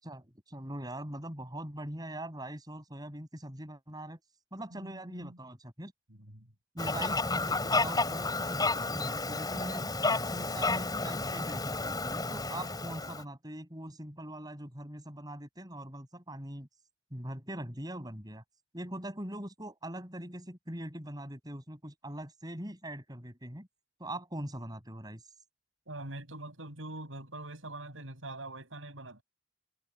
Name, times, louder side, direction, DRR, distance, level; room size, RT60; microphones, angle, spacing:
voice 1, 0.0-4.2 4.5-5.9 6.7-9.9 10.2-16.7 17.1-18.4 18.7-23.7 24.0-25.2, right 1 dB, 20° right, 7.4 m, -42 dB
voice 2, 4.7-5.4 6.1-6.5 25.9-29.2, right 2 dB, 85° right, 7.6 m, -44 dB
Fowl, 6.8-13.2, left 3 dB, 20° left, 4.4 m, -31 dB
head